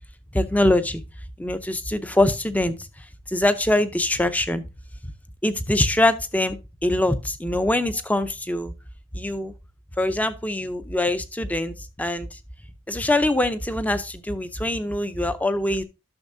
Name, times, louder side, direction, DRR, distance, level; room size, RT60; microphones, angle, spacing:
voice 1, 0.3-1.0 1.4-2.9 3.3-4.7 5.4-6.6 6.8-8.7 9.1-9.5 10.0-12.4 12.9-15.8, left 1 dB, 10° left, 0.5 m, -23 dB
11.5 x 6.3 x 2.6 m
head